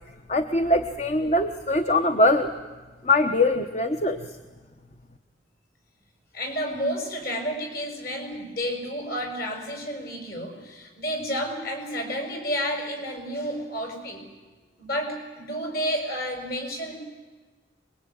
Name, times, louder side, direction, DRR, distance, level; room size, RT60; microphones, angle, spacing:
voice 1, 0.3-2.5 3.0-4.3, left 2 dB, 40° left, 7 dB, 1.1 m, -22 dB
voice 2, 6.3-14.2 14.8-17.0, equal, 55° left, 3 dB, 6.4 m, -31 dB
25.0 x 21.5 x 9.5 m, 1.3 s
head